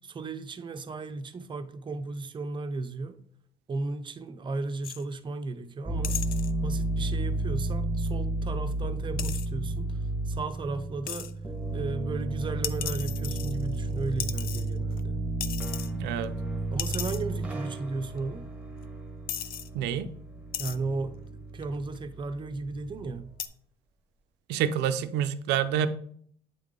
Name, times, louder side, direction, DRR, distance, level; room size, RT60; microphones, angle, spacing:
voice 1, 0.0-3.2 3.7-6.2 6.6-10.0 10.3-11.3 11.7-15.2 16.7-18.5 20.6-23.3, right 3 dB, 30° right, 0.6 m, -35 dB
sound 1, 4.8-5.0 6.0-6.5 9.2-9.5 11.1-11.3 12.6-13.8 14.2-15.0 15.4-15.9 16.2-16.3 16.8-17.2 18.2-18.3 18.8-18.9 19.3-19.7 20.5-20.8 21.6-22.0 23.4-23.5, left 10 dB, 60° left, 0.5 m, -35 dB
sound 2, 5.9-23.3, right 2 dB, 10° right, 1.1 m, -32 dB
voice 2, 15.9-16.3 19.7-20.1 24.5-25.9, right 9 dB, 85° right, 0.5 m, -27 dB
8.5 x 3.6 x 3.7 m
cardioid pair, 110°, 17 cm